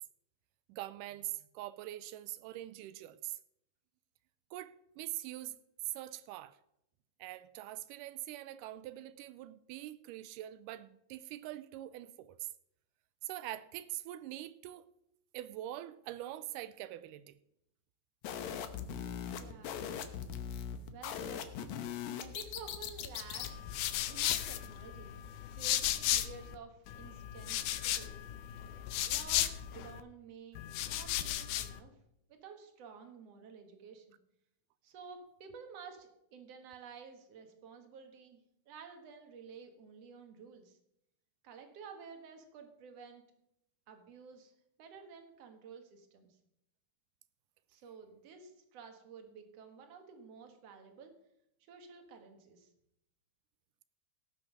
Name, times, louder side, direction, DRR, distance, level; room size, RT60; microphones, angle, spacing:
voice 1, 0.7-3.4 4.5-5.6 5.8-6.6 7.2-12.5 13.2-14.9 15.3-17.4, right 14 dB, 90° right, 2.1 m, -43 dB
sound 1, 18.2-23.5, left 8 dB, 70° left, 2.1 m, -40 dB
voice 2, 19.4-19.9 20.9-21.5 22.2-23.6 24.1-25.1 25.5-27.6 27.8-28.3 29.0-32.0 32.3-34.2 34.8-38.4 38.7-40.8 41.4-43.2 43.9-44.5 44.8-46.4 47.7-51.1 51.7-52.7, right 6 dB, 55° right, 2.5 m, -52 dB
sound 2, 23.4-26.6 26.9-30.0 30.6-31.8, left 13 dB, 90° left, 2.3 m, -35 dB
18.0 x 6.2 x 6.0 m
omnidirectional pair, 3.6 m